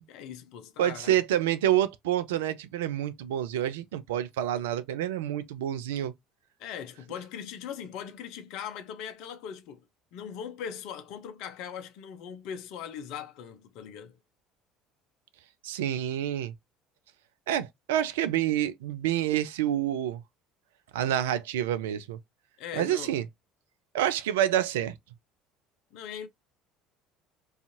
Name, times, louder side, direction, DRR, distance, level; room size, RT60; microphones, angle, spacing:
voice 1, 0.0-1.2 6.6-9.9 10.1-14.2 22.6-23.2 25.9-26.3, left 8 dB, 60° left, 0.5 m, -40 dB
voice 2, 0.8-6.1 15.6-16.5 17.5-20.2 20.9-22.2 22.7-23.2 23.9-24.9, right 11 dB, 75° right, 0.3 m, -28 dB
2.5 x 2.4 x 2.6 m
figure-of-eight pair, 60°, 0 cm